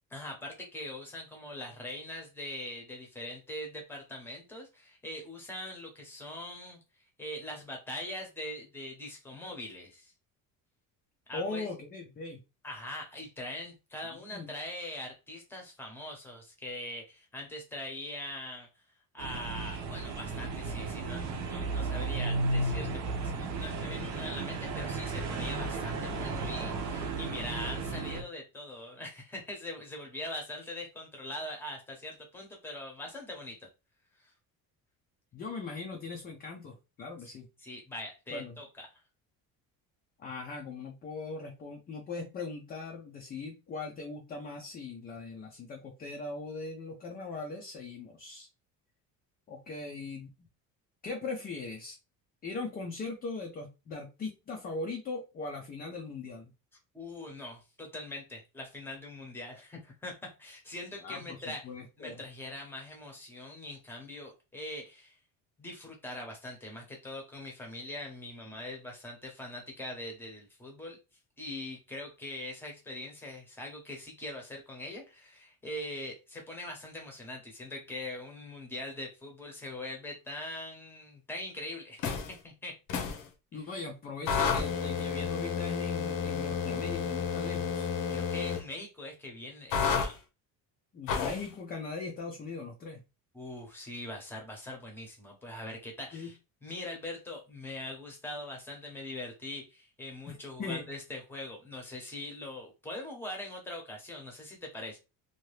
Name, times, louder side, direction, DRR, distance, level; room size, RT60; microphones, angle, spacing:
voice 1, 0.1-6.8 7.2-10.1 11.3-11.7 12.6-18.7 19.1-33.7 37.2-37.3 37.6-38.9 56.9-60.1 60.4-61.6 62.0-65.1 65.6-71.0 71.4-82.7 88.1-90.2 93.3-105.0, left 1 dB, 5° left, 1 dB, 0.8 m, -42 dB
voice 2, 11.3-12.4 14.1-14.5 35.3-37.5 38.3-38.6 40.2-48.5 49.5-50.3 51.0-52.0 52.4-56.5 61.0-62.2 83.5-87.9 90.9-93.0 96.1-96.3 100.3-100.9, left 3 dB, 25° left, 2 dB, 0.4 m, -40 dB
sound 1, 19.2-28.2, right 3 dB, 50° right, 0.6 m, -34 dB
sound 2, 82.0-82.3 82.9-83.2 84.3-88.6 89.7-90.1 91.1-91.5, left 6 dB, 70° left, 0.8 m, -31 dB
2.8 x 2.3 x 3.2 m, 0.28 s
cardioid pair, 170°, 37 cm